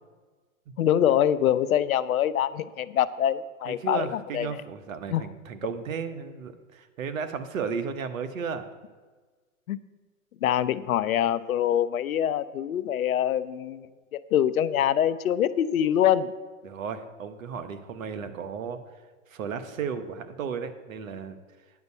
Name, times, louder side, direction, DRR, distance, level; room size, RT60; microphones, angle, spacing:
voice 1, 0.8-4.6 5.1-5.3 9.7-9.8 10.4-16.3, left 10 dB, 80° left, 15 dB, 0.7 m, -25 dB
voice 2, 3.7-8.7 16.6-18.8 19.3-21.4, right 6 dB, 70° right, 10 dB, 1.2 m, -34 dB
9.4 x 5.3 x 8.2 m, 1.4 s
hypercardioid pair, 130°, 41 cm